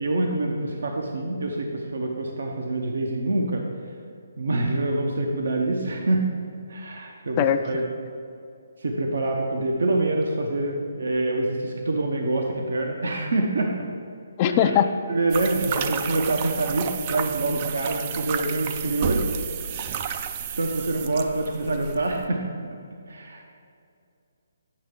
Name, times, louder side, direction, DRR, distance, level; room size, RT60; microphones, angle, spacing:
voice 1, 0.0-3.6 4.4-6.2 6.7-7.9 8.8-13.8 14.5-14.8 15.1-19.3 20.6-22.4 23.1-23.4, right 2 dB, 70° right, 2 dB, 0.8 m, -26 dB
voice 2, 14.4-14.9, left 9 dB, 30° left, 9 dB, 0.4 m, -19 dB
sound 1, 15.3-22.3, right 7 dB, 35° right, 0.4 m, -31 dB
8.6 x 5.6 x 3.6 m, 2.5 s
figure-of-eight pair, 145°, 0 cm